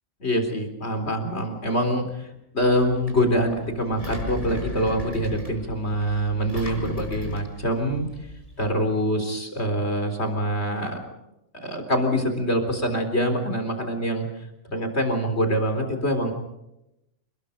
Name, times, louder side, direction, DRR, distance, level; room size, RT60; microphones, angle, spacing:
voice 1, 0.2-2.3 2.5-8.1 8.6-11.0 11.6-14.3 14.6-16.3, equal, 55° left, 6 dB, 4.2 m, -25 dB
Engine, 2.6-8.7, left 2 dB, 25° left, 5.8 m, -37 dB
28.5 x 21.0 x 5.3 m, 0.88 s
omnidirectional pair, 1.3 m